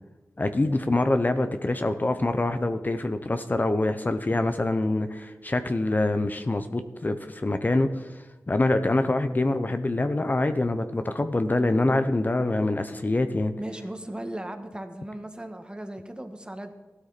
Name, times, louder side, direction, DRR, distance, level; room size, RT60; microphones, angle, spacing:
voice 1, 0.4-13.5, left 2 dB, 35° left, 9 dB, 0.9 m, -25 dB
voice 2, 13.6-16.7, right 1 dB, 20° right, 6 dB, 1.7 m, -37 dB
15.5 x 12.5 x 4.2 m, 1.2 s
cardioid pair, 55°, 5 cm